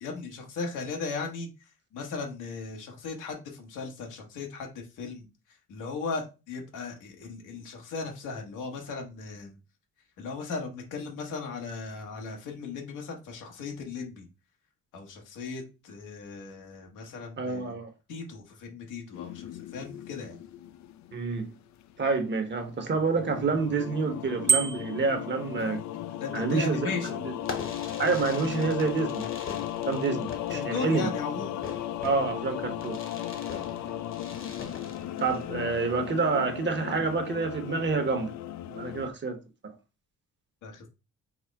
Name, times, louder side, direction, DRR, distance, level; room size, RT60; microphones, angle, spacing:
voice 1, 0.0-5.3 5.7-9.5 10.2-14.2 14.9-17.7 18.1-20.4 26.2-27.2 30.5-31.6 40.6-40.9, left 4 dB, 90° left, 1.4 m, -37 dB
voice 2, 17.4-17.9 21.1-21.5 22.0-25.8 26.3-26.9 27.2-27.3 28.0-29.2 29.8-31.1 32.0-33.0 35.2-38.3 38.7-39.4 39.6-39.7, right 4 dB, 35° right, 1.0 m, -28 dB
sound 1, 19.1-22.1 22.6-39.1, left 12 dB, 70° left, 0.4 m, -36 dB
Bicycle bell, 24.5-25.1, right 5 dB, 10° right, 0.9 m, -25 dB
Fireworks, 27.4-35.8, left 4 dB, 45° left, 1.1 m, -42 dB
4.8 x 2.1 x 4.6 m
cardioid pair, 90°, 30 cm